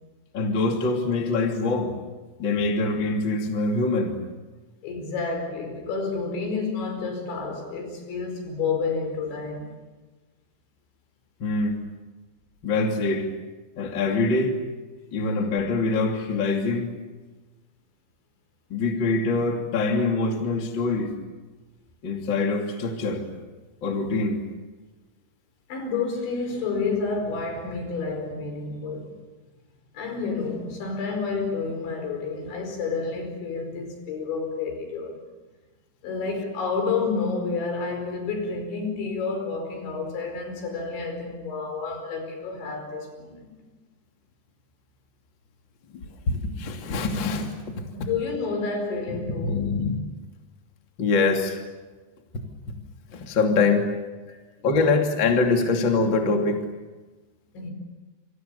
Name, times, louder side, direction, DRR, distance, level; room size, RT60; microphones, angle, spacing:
voice 1, 0.3-1.9 2.4-4.2 11.4-11.8 12.6-13.3 13.8-14.6 15.1-16.9 18.7-21.1 22.0-23.3 23.8-24.4 45.9-48.1 49.1-49.9 51.0-51.6 52.3-52.8 53.1-53.9 54.6-56.6, left 3 dB, 30° left, 2.8 m, -24 dB
voice 2, 4.8-9.8 14.9-15.1 25.7-29.2 29.9-35.2 36.0-43.5 46.5-46.6 47.9-49.8 54.3-54.4 57.5-57.7, left 4 dB, 70° left, 7.2 m, -30 dB
29.0 x 25.5 x 7.1 m
omnidirectional pair, 5.4 m